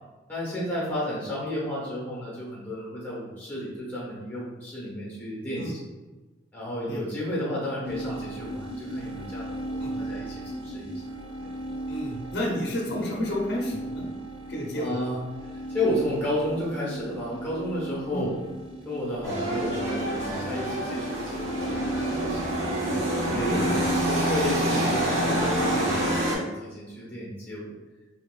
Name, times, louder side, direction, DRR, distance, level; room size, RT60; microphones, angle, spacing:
voice 1, 0.3-5.9 6.5-10.3 10.6-10.9 11.4-11.5 14.7-15.2 15.7-18.3 18.8-22.7 23.3-27.7, left 1 dB, 10° left, -6 dB, 1.3 m, -32 dB
sound 1, 7.8-26.3, right 1 dB, 30° right, 0.9 m, -35 dB
voice 2, 11.9-14.1 14.5-15.0 18.1-18.2 23.5-23.6, equal, 60° left, -2 dB, 0.7 m, -31 dB
sound 2, 19.2-26.3, right 1 dB, 80° right, 1.3 m, -27 dB
4.0 x 2.9 x 2.4 m, 1.2 s
head